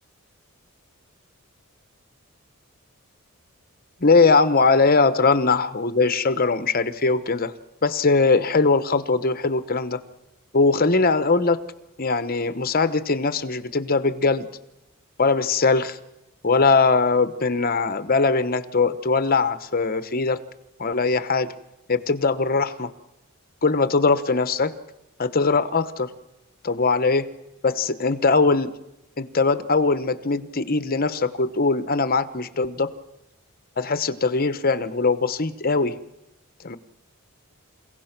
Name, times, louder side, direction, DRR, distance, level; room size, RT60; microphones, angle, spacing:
voice 1, 4.0-7.5 7.8-10.0 10.5-11.6 12.0-14.5 15.2-16.0 16.4-20.4 20.8-21.5 21.9-22.9 23.6-24.7 25.2-26.1 26.6-27.3 27.6-28.8 29.2-32.9 33.8-36.0 36.6-36.8, left 4 dB, 45° left, 12 dB, 1.0 m, -21 dB
29.0 x 16.5 x 6.0 m, 0.91 s
head